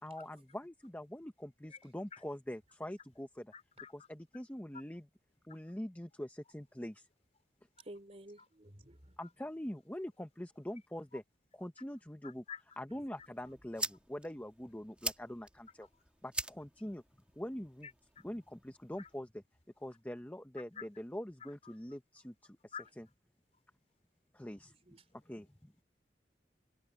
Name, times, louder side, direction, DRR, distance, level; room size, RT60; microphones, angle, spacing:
voice 1, 0.0-3.5 3.9-5.0 5.4-7.1 9.2-11.2 11.5-12.4 12.8-15.9 16.2-17.0 17.4-17.9 18.2-19.3 19.8-23.0 24.3-24.7 25.2-25.7, left 1 dB, 10° left, 0.9 m, -44 dB
voice 2, 3.5-4.1 5.5-5.6 8.4-8.5 9.2-9.3 11.1-11.2 12.2-12.8 17.8-18.2 19.0-19.1 20.7-20.9 21.4-21.8 22.7-22.9, left 7 dB, 40° left, 3.9 m, -50 dB
voice 3, 7.8-9.2 24.4-24.6 24.8-25.0, right 1 dB, 35° right, 3.3 m, -53 dB
sound 1, 13.2-19.2, right 2 dB, 5° right, 1.6 m, -45 dB
head